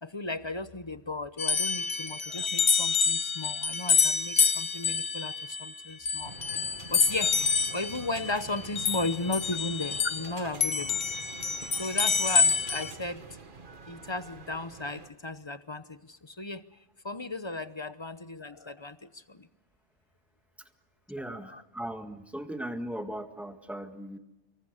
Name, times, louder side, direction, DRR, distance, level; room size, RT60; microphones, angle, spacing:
voice 1, 0.0-7.3 7.7-11.0 11.7-13.4 13.9-16.6 17.0-19.5 21.2-21.6, left 2 dB, 25° left, 13 dB, 0.8 m, -36 dB
sound 1, 1.4-10.3 10.6-12.9, left 5 dB, 50° left, 1.3 m, -27 dB
sound 2, 6.2-15.1, right 4 dB, 45° right, 1.7 m, -46 dB
voice 2, 21.1-24.2, right 1 dB, ahead, 7 dB, 1.7 m, -38 dB
25.5 x 23.5 x 6.6 m, 0.97 s
omnidirectional pair, 1.2 m